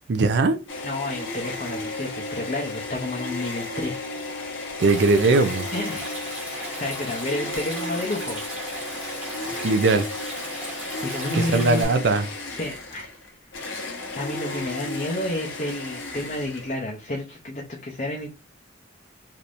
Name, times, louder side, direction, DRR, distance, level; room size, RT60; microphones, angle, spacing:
voice 1, 0.1-0.6 4.8-5.7 9.6-10.1 11.3-12.3, right 3 dB, 60° right, 0.4 m, -20 dB
sound 1, 0.7-16.9, left 2 dB, 85° left, 1.0 m, -34 dB
voice 2, 0.8-4.0 5.7-6.2 6.5-8.4 11.0-13.2 14.2-18.3, left 1 dB, 40° left, 0.6 m, -31 dB
Stream, 4.8-11.8, right 1 dB, 10° right, 1.3 m, -37 dB
3.3 x 2.8 x 2.5 m
head